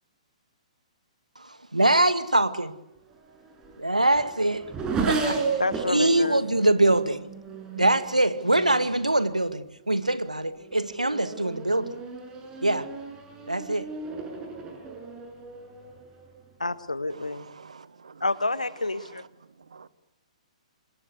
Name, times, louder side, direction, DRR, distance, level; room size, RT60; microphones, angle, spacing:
voice 1, 1.7-2.7 3.8-4.7 5.1-5.4 5.9-7.3 7.8-12.0 12.6-12.9 13.5-13.9, right 1 dB, 85° right, 2.1 m, -23 dB
Race car auto racing / Accelerating revving vroom, 3.1-9.0 9.8-10.1 10.6-16.5, right 4 dB, 20° right, 7.2 m, -34 dB
voice 2, 5.6-6.4 16.6-17.5 18.2-19.2, left 2 dB, 80° left, 1.8 m, -29 dB
voice 3, 17.1-18.2 18.9-19.3 19.6-19.9, right 5 dB, 65° right, 1.6 m, -48 dB
28.0 x 25.5 x 8.2 m
figure-of-eight pair, 120°, 4 cm